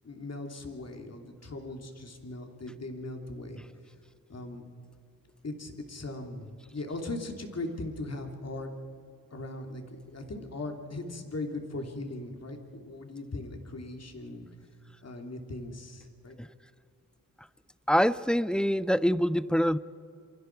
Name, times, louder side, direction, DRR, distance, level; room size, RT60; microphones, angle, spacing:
voice 1, 0.0-3.6 4.3-4.6 5.4-8.7 9.3-14.5 15.0-16.4, left 2 dB, 45° left, 3 dB, 3.1 m, -39 dB
voice 2, 17.9-19.8, equal, ahead, 17 dB, 0.5 m, -25 dB
28.0 x 23.5 x 4.7 m, 2.4 s
cardioid pair, 80°, 36 cm